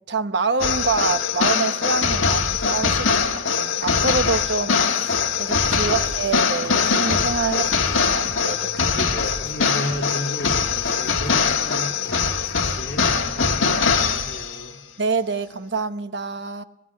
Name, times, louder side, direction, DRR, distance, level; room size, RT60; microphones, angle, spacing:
voice 1, 0.1-3.2 3.6-7.6 8.1-9.2 15.0-16.6, right 4 dB, 65° right, 10 dB, 0.9 m, -26 dB
sound 1, 0.6-14.7, left 5 dB, 85° left, 1.6 m, -22 dB
sound 2, 5.1-13.3, left 1 dB, 20° left, 1.9 m, -42 dB
voice 2, 8.9-11.9 12.7-14.8, left 1 dB, 50° left, 2 dB, 2.4 m, -33 dB
20.5 x 14.0 x 9.7 m, 0.90 s
head